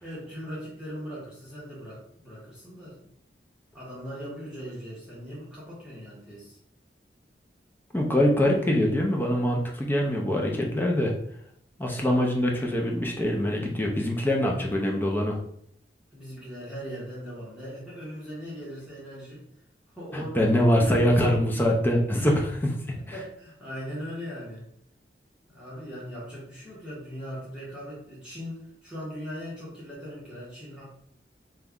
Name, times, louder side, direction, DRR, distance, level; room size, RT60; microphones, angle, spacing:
voice 1, 0.0-3.1 3.7-6.6 16.1-19.4 19.9-21.0 22.2-22.3 23.0-24.6 25.5-30.8, equal, 5° right, -8 dB, 1.1 m, -39 dB
voice 2, 7.9-11.1 11.8-15.4 20.1-23.0, left 1 dB, 10° left, 0 dB, 0.5 m, -24 dB
3.1 x 2.3 x 3.7 m, 0.68 s
head